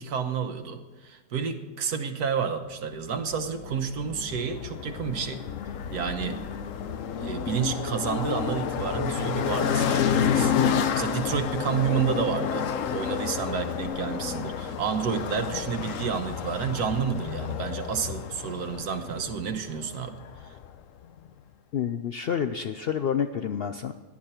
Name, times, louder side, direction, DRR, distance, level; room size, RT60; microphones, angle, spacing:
voice 1, 0.0-5.4 5.9-6.4 7.2-10.5 10.9-20.2, right 7 dB, 75° right, 8 dB, 1.5 m, -30 dB
snowmobile pass fast nearby echo doppler quick funky, 3.3-20.8, left 7 dB, 60° left, 1.0 m, -30 dB
voice 2, 21.7-23.9, left 8 dB, 85° left, 9 dB, 0.5 m, -28 dB
17.0 x 11.0 x 4.4 m, 1.4 s
omnidirectional pair, 1.7 m